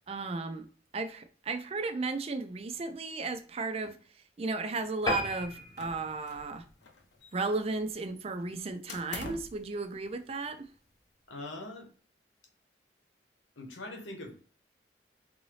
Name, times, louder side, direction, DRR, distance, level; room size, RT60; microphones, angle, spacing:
voice 1, 0.1-4.0 4.4-6.6 7.3-10.7, right 3 dB, 30° right, 0.3 m, -34 dB
sound 1, 5.1-7.8 8.3-8.5 8.9-9.0 9.3-9.4 9.7-9.8, left 2 dB, 20° left, 0.6 m, -37 dB
sound 2, 5.8-6.5 6.8-7.7 8.9-9.6, left 3 dB, 65° left, 0.6 m, -44 dB
voice 2, 11.3-11.9 13.6-14.4, left 2 dB, 85° left, 1.0 m, -42 dB
3.8 x 2.7 x 3.1 m
head